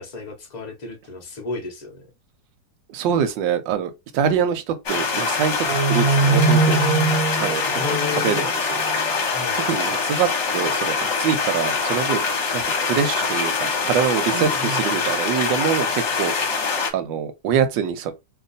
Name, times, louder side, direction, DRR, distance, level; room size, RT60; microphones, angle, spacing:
voice 1, 0.0-2.0 7.7-8.5 9.3-9.6 14.3-15.1, left 4 dB, 65° left, 0.4 m, -32 dB
voice 2, 2.9-6.8 7.4-7.8 8.1-8.5 9.7-16.4 16.9-18.1, right 8 dB, 85° right, 1.3 m, -24 dB
sound 1, 4.9-16.9, left 4 dB, 50° left, 1.0 m, -24 dB
sound 2, 5.6-9.1, right 4 dB, 65° right, 1.0 m, -21 dB
3.0 x 2.3 x 3.9 m
omnidirectional pair, 1.9 m